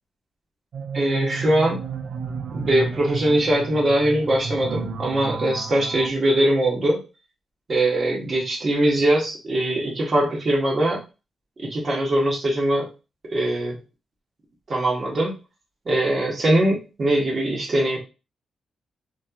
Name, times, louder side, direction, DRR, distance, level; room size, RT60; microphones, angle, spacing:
sound 1, 0.7-6.1, right 4 dB, 80° right, 0.3 m, -32 dB
voice 1, 0.9-1.8 2.5-7.0 7.7-11.0 11.6-12.9 13.3-13.7 14.7-15.3 15.9-18.0, right 1 dB, 45° right, -2 dB, 1.2 m, -21 dB
3.1 x 2.8 x 2.4 m, 0.30 s
cardioid pair, 105°, 0 cm